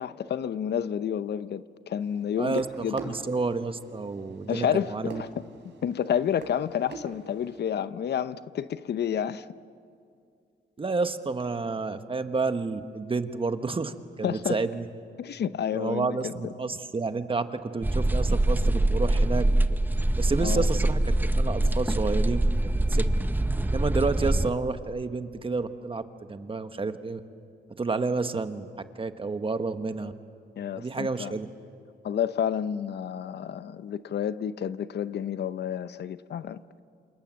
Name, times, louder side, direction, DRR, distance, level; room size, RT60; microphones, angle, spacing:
voice 1, 0.0-3.0 4.5-5.3 5.8-9.5 14.2-14.6 15.2-16.5 20.4-20.7 30.6-31.3 32.0-36.6, left 9 dB, 70° left, 0.8 m, -30 dB
sound 1, 2.0-7.6, right 5 dB, 85° right, 3.7 m, -46 dB
voice 2, 2.9-5.2 10.8-14.9 15.7-19.5 20.2-21.0 21.4-23.2 23.7-27.2 27.8-28.7 29.0-30.1 30.8-31.5, right 4 dB, 30° right, 1.3 m, -30 dB
sound 2, 17.8-24.5, right 1 dB, 10° right, 0.8 m, -24 dB
28.0 x 27.5 x 7.5 m
cardioid pair, 100°, 18 cm